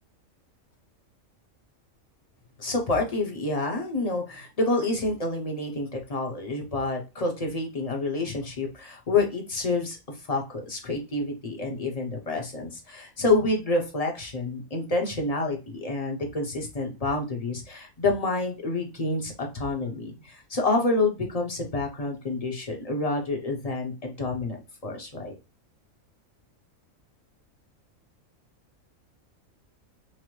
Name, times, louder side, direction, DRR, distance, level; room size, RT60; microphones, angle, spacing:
voice 1, 2.6-25.3, left 2 dB, 30° left, 1 dB, 0.9 m, -28 dB
5.8 x 2.1 x 3.1 m, 0.28 s
omnidirectional pair, 1.4 m